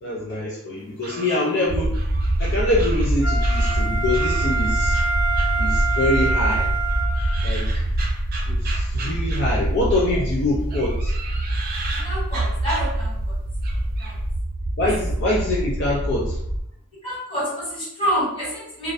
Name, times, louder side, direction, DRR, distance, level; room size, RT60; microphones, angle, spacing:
voice 1, 0.0-2.0 2.4-5.0 5.6-6.7 7.4-7.7 8.5-11.1 14.8-16.4, left 2 dB, 50° left, -6 dB, 0.4 m, -24 dB
sound 1, 0.8-4.5 4.9-6.2 6.5-10.2 10.6-13.3 13.6-14.2, right 3 dB, 45° right, 0.4 m, -37 dB
sound 2, 1.7-16.6, right 1 dB, 70° right, 0.7 m, -24 dB
Wind instrument woodwind instrument, 3.2-7.5 8.0-8.1, right 4 dB, 85° left, 0.9 m, -26 dB
voice 2, 12.0-13.4 14.0-14.1 14.8-14.9 17.0-18.9, equal, 25° left, -9 dB, 1.4 m, -27 dB
2.3 x 2.0 x 2.6 m, 0.75 s
head